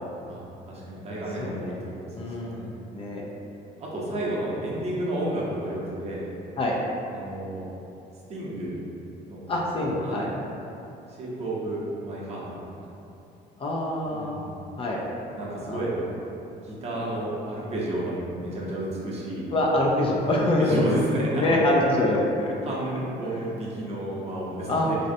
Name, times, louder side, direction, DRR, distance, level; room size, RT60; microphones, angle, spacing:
voice 1, 0.3-2.8 3.8-6.2 7.1-7.7 8.3-8.8 9.3-9.5 10.0-10.3 11.1-12.9 14.1-14.6 15.3-15.9 16.6-19.5 20.4-21.6 22.6-25.0, right 1 dB, 40° right, -6 dB, 0.8 m, -31 dB
voice 2, 1.4-1.8 2.2-2.7 2.9-3.2 6.6-6.8 9.5-10.3 13.6-14.4 14.8-15.0 15.7-15.8 19.5-20.9 21.4-22.5 24.7-24.9, left 1 dB, 35° left, -3 dB, 0.4 m, -25 dB
3.0 x 2.7 x 2.6 m, 2.8 s
cardioid pair, 110°, 17 cm